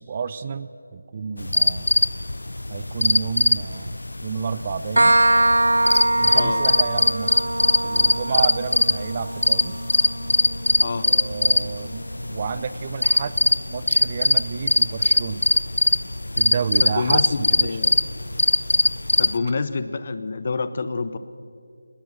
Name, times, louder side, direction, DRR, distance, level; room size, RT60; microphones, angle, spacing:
voice 1, 0.0-1.9 2.7-3.9 4.2-5.2 6.2-7.5 7.8-9.8 11.0-15.4 16.4-17.8, right 6 dB, 30° right, 14 dB, 0.6 m, -30 dB
sound 1, 1.4-19.4, left 2 dB, 75° left, 0.6 m, -22 dB
Water tap faucet, 4.7-10.1, left 3 dB, 10° left, 2.9 m, -52 dB
sound 2, 5.0-12.4, right 1 dB, 75° right, 0.5 m, -23 dB
voice 2, 16.8-18.0 19.2-21.2, left 4 dB, 40° left, 13 dB, 1.0 m, -27 dB
22.0 x 20.0 x 7.6 m, 2.3 s
figure-of-eight pair, 160°, 0 cm